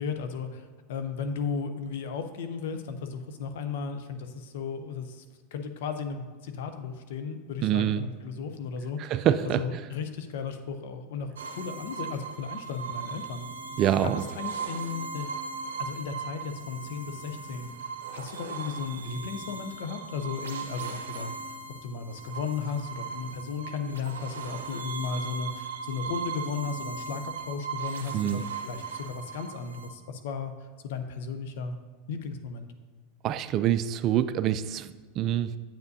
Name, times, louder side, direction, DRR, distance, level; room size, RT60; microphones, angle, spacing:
voice 1, 0.0-5.2 5.5-9.2 9.5-13.5 14.0-15.3 15.8-30.5 30.8-31.8 32.1-32.7, left 5 dB, 70° left, 7 dB, 0.7 m, -35 dB
voice 2, 7.6-8.0 9.0-9.6 13.8-14.2 28.1-28.5 33.2-34.9 35.2-35.5, right 11 dB, 45° right, 13 dB, 0.3 m, -25 dB
sound 1, 11.4-29.9, right 5 dB, 90° right, 0.6 m, -38 dB
7.7 x 7.1 x 2.7 m, 1.4 s
hypercardioid pair, 100°, 0 cm